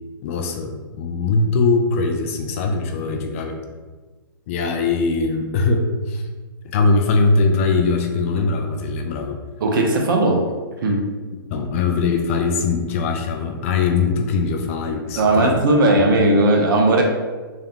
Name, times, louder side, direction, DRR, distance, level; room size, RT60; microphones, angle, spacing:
voice 1, 0.2-3.6 4.5-6.2 6.7-9.4 11.5-15.5 16.1-16.3, left 4 dB, 35° left, 4 dB, 0.4 m, -21 dB
voice 2, 9.6-10.4 10.8-11.0 15.2-17.0, right 2 dB, 60° right, 1 dB, 0.8 m, -17 dB
3.5 x 2.8 x 3.7 m, 1.3 s
hypercardioid pair, 150°, 12 cm